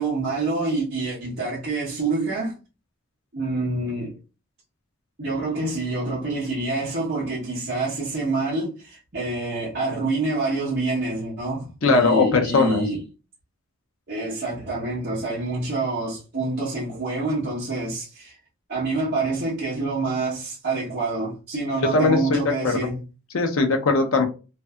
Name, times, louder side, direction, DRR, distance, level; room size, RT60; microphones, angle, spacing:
voice 1, 0.0-2.5 3.3-4.2 5.2-13.0 14.1-18.4 18.7-23.0, right 3 dB, 45° right, 0.9 m, -27 dB
voice 2, 11.8-12.8 21.9-22.8 23.3-24.2, left 3 dB, 70° left, 0.5 m, -20 dB
2.6 x 2.5 x 2.3 m
head